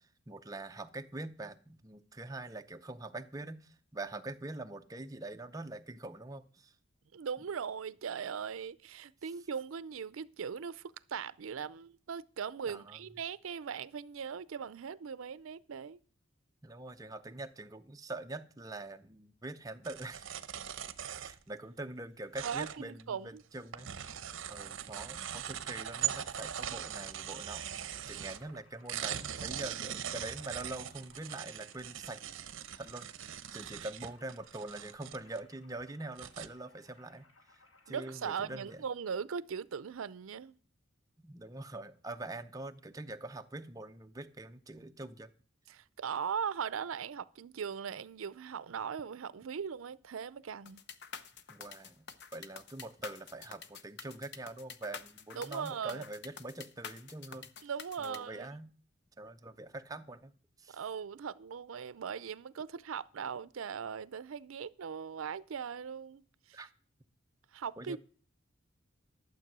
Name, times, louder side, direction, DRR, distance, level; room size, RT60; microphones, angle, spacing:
voice 1, 0.0-6.8 12.7-13.0 16.6-20.3 21.2-23.9 24.5-32.2 32.8-33.1 33.5-38.8 41.2-45.3 51.5-57.5 58.0-58.7 59.2-60.3 60.6-60.8 66.5-66.7 67.8-68.0, right 2 dB, 20° right, 0.6 m, -44 dB
voice 2, 7.1-16.0 22.4-23.4 33.6-33.7 37.9-40.6 45.7-50.8 55.4-56.0 57.6-58.5 60.7-66.2 66.5-66.6 67.5-68.0, right 7 dB, 90° right, 0.5 m, -39 dB
sound 1, 19.8-21.5 22.3-23.0 23.4-28.6 28.9-35.4 35.8-35.9 36.2-36.5, right 9 dB, 65° right, 0.7 m, -41 dB
sound 2, 27.5-38.8, left 2 dB, 85° left, 2.3 m, -65 dB
sound 3, 50.7-58.2, left 6 dB, 55° left, 0.8 m, -47 dB
12.0 x 7.3 x 6.1 m
head